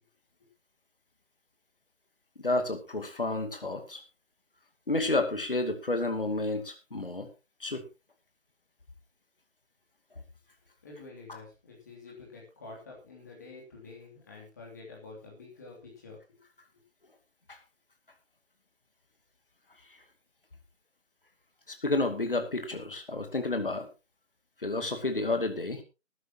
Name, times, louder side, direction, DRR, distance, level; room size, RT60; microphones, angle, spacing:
voice 1, 2.4-4.0 4.9-7.3 7.6-7.8 11.3-11.4 17.5-17.6 21.7-23.9 24.6-25.8, left 2 dB, 45° left, 6 dB, 2.5 m, -30 dB
voice 2, 10.8-16.4, left 3 dB, 15° left, -3 dB, 2.9 m, -48 dB
19.5 x 11.0 x 2.9 m, 0.28 s
figure-of-eight pair, 165°, 39 cm